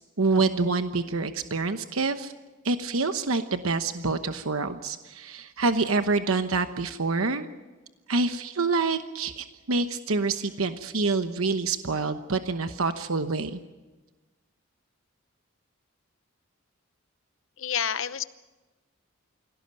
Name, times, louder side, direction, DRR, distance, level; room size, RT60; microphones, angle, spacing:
voice 1, 0.2-2.3 2.6-7.5 8.1-13.6, right 3 dB, 85° right, 8 dB, 1.1 m, -27 dB
voice 2, 17.6-18.2, left 8 dB, 70° left, 13 dB, 0.9 m, -28 dB
25.5 x 17.0 x 8.9 m, 1.2 s
head